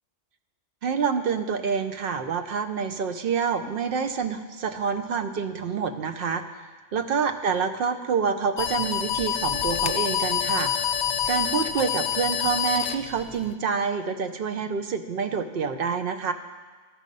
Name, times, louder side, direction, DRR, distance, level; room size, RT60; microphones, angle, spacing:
voice 1, 0.8-6.4 6.9-10.7 11.3-16.3, right 6 dB, 60° right, 9 dB, 0.7 m, -27 dB
sound 1, 8.6-13.5, left 8 dB, 70° left, 0.8 m, -27 dB
12.5 x 6.1 x 5.3 m, 1.4 s
omnidirectional pair, 1.3 m